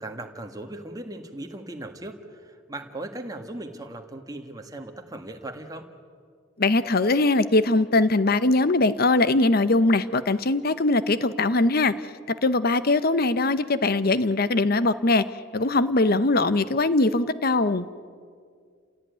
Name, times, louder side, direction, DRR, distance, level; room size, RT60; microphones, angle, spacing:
voice 1, 0.0-5.9, right 1 dB, 20° right, 4 dB, 1.8 m, -38 dB
voice 2, 6.6-11.9 12.4-15.2 15.5-17.9, left 2 dB, 50° left, 14 dB, 0.8 m, -21 dB
29.0 x 16.5 x 9.5 m, 2.1 s
head